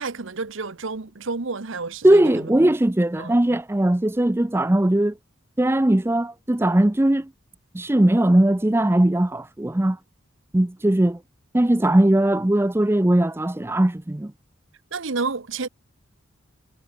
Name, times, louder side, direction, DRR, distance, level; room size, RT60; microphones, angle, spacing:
voice 1, 0.0-2.5 3.2-3.4 14.9-15.7, right 4 dB, 65° right, 1.0 m, -30 dB
voice 2, 2.0-5.1 5.6-7.3 7.7-10.0 10.5-11.2 11.5-14.3, right 1 dB, 10° right, 0.4 m, -19 dB
head